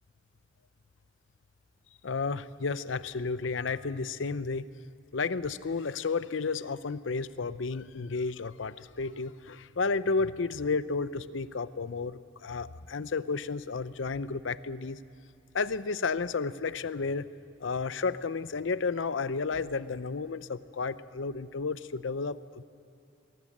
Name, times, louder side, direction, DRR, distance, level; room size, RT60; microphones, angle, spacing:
voice 1, 2.0-4.7 5.1-15.0 15.5-17.3 17.6-22.6, left 4 dB, 90° left, 15 dB, 0.7 m, -32 dB
21.5 x 18.5 x 7.4 m, 2.6 s
head